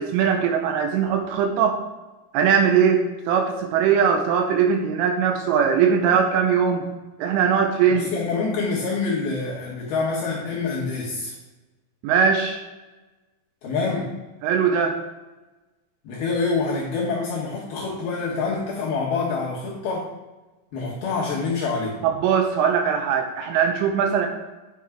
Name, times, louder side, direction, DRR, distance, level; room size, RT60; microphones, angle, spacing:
voice 1, 0.0-1.8 2.3-6.9 7.2-8.1 12.0-12.6 14.4-15.0 22.0-24.3, right 7 dB, 85° right, 4 dB, 3.1 m, -20 dB
voice 2, 7.9-11.3 13.6-14.1 16.0-20.1 20.7-22.0, left 4 dB, 70° left, -6 dB, 2.5 m, -26 dB
10.5 x 6.2 x 3.5 m, 1.1 s
omnidirectional pair, 5.9 m